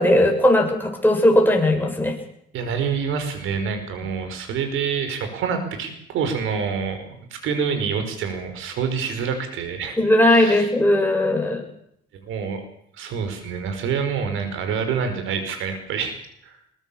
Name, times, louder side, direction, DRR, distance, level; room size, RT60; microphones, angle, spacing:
voice 1, 0.0-2.2 10.0-11.6, left 1 dB, 10° left, 2 dB, 7.4 m, -18 dB
voice 2, 2.5-10.0 10.2-10.7 12.2-12.6 13.0-16.1 16.4-16.6, right 6 dB, 85° right, 7 dB, 5.2 m, -27 dB
22.5 x 21.0 x 7.2 m, 0.73 s
cardioid pair, 90°, 20 cm